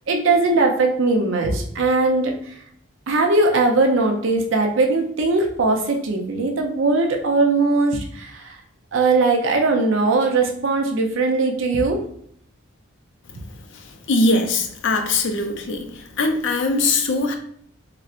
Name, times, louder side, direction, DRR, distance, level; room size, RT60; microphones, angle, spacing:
voice 1, 0.1-2.5 3.1-8.6 8.9-12.0, right 3 dB, 65° right, 2 dB, 0.5 m, -20 dB
voice 2, 14.1-15.9 16.2-17.4, left 2 dB, 55° left, 4 dB, 0.4 m, -21 dB
4.1 x 2.1 x 2.4 m, 0.66 s
head